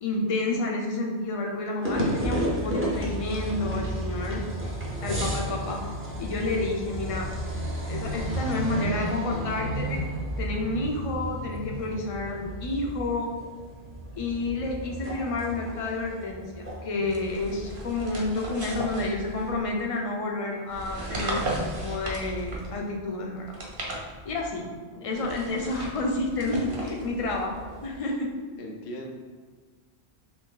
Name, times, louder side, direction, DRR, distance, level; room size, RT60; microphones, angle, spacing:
voice 1, 0.0-4.7 5.0-5.8 6.2-7.3 7.9-10.0 10.4-13.3 14.2-23.5 24.2-24.6 25.0-27.5 27.8-28.3, left 2 dB, 45° left, 0 dB, 0.4 m, -30 dB
sound 1, 1.8-18.2, equal, 15° right, 0.5 m, -32 dB
sound 2, 17.1-19.8 20.7-22.9 23.4-24.6 25.1-28.0, right 1 dB, 60° right, 0.9 m, -36 dB
voice 2, 24.5-25.4 26.6-27.2 27.9-28.1 28.6-29.1, equal, 90° left, 1 dB, 0.9 m, -42 dB
3.1 x 2.6 x 3.7 m, 1.5 s
omnidirectional pair, 1.1 m